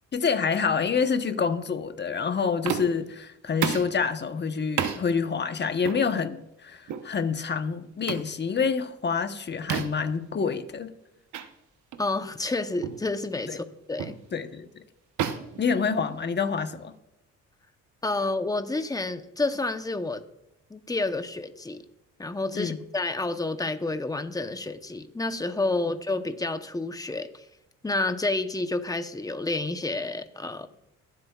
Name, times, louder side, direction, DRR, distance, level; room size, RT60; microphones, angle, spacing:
voice 1, 0.1-10.9 13.5-13.6 14.3-14.8 15.6-16.9 22.5-22.8, left 5 dB, 35° left, 8 dB, 1.0 m, -27 dB
sound 1, 2.6-3.1 3.6-4.0 4.8-5.0 5.8-6.0 6.9-7.1 8.1-8.3 9.7-10.1 11.3-11.5 11.9-12.1 12.8-13.1 14.0-14.2 15.2-16.4, right 8 dB, 75° right, 1.0 m, -31 dB
voice 2, 12.0-14.2 18.0-20.2 20.7-21.8 22.2-27.4 27.8-30.7, left 2 dB, 10° left, 9 dB, 0.9 m, -29 dB
22.5 x 8.0 x 2.4 m, 0.86 s
cardioid pair, 90°, 30 cm